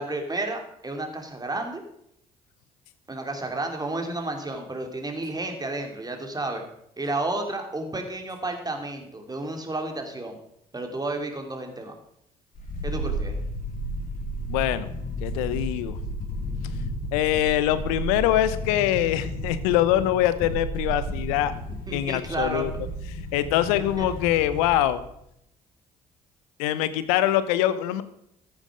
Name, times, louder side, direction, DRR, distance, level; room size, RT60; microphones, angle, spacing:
voice 1, 0.0-1.8 3.1-6.6 7.0-10.4 10.7-12.0 12.8-13.4 21.9-22.6 24.0-24.1, right 2 dB, 20° right, 4 dB, 3.1 m, -31 dB
sound 1, 12.5-24.9 25.2-25.3, equal, 50° left, 3.9 m, -33 dB
voice 2, 14.5-14.9 15.2-16.0 17.1-21.5 21.9-22.7 23.3-25.0 26.6-28.0, left 13 dB, 80° left, 14 dB, 0.9 m, -23 dB
14.5 x 9.0 x 5.1 m, 0.76 s
hypercardioid pair, 50°, 18 cm